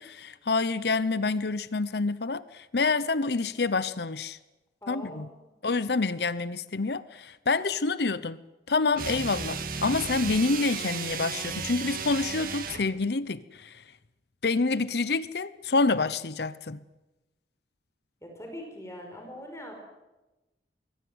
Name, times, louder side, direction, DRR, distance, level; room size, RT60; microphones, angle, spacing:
voice 1, 0.0-4.4 4.9-5.3 5.6-8.4 8.7-13.8 14.4-16.8, left 3 dB, 70° left, 0.8 m, -27 dB
voice 2, 4.8-5.6 18.2-19.8, equal, 15° left, 5.1 m, -42 dB
sound 1, 8.9-12.9, right 5 dB, 55° right, 1.9 m, -34 dB
25.0 x 22.5 x 8.0 m
head